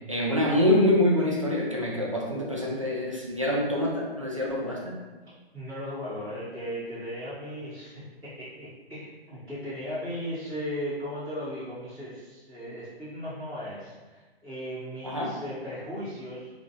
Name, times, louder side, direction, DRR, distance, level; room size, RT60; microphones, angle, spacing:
voice 1, 0.1-4.9 15.0-15.3, left 1 dB, 35° right, -3 dB, 0.4 m, -25 dB
voice 2, 5.5-16.5, equal, 5° right, -21 dB, 1.3 m, -37 dB
3.0 x 2.6 x 3.5 m, 1.2 s
hypercardioid pair, 180°, 31 cm